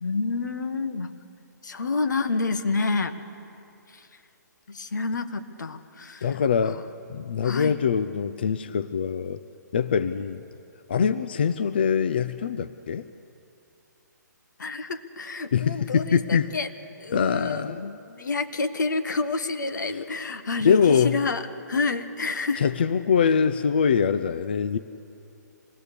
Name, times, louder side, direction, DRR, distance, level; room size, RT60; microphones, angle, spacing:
voice 1, 0.0-1.1 1.6-3.2 3.9-4.1 4.7-6.3 7.4-7.8 14.6-16.7 17.0-21.4 21.7-22.7, left 3 dB, 75° left, 9 dB, 1.7 m, -29 dB
voice 2, 6.2-6.8 7.1-9.4 9.7-10.4 10.9-13.1 15.5-16.5 17.1-18.0 20.6-21.2 22.6-24.8, left 6 dB, 30° left, 12 dB, 0.4 m, -23 dB
26.5 x 19.5 x 6.8 m, 2.7 s
hypercardioid pair, 175°, 10 cm